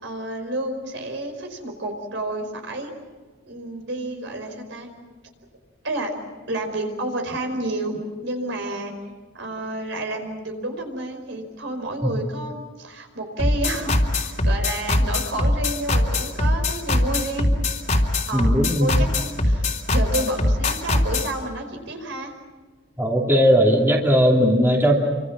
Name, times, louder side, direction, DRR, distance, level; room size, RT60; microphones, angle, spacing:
voice 1, 0.0-2.9 3.5-4.9 5.8-6.1 6.5-8.9 9.3-17.5 18.3-19.6 19.9-22.3, right 1 dB, 70° right, 4 dB, 5.0 m, -30 dB
sound 1, 13.4-21.3, left 1 dB, 40° left, 3.3 m, -21 dB
voice 2, 18.3-18.9 23.0-24.9, equal, 10° right, -1 dB, 2.8 m, -18 dB
30.0 x 25.5 x 6.2 m, 1.3 s
head